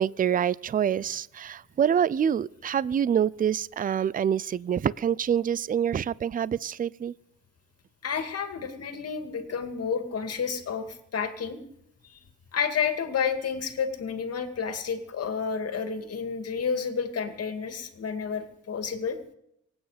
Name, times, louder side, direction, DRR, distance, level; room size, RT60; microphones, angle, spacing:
voice 1, 0.0-7.1, right 8 dB, 30° right, 22 dB, 0.4 m, -26 dB
voice 2, 8.0-11.6 12.0-12.2 12.5-19.2, left 6 dB, 55° left, 7 dB, 2.4 m, -30 dB
24.5 x 8.9 x 5.1 m, 0.77 s
cardioid pair, 90°, 30 cm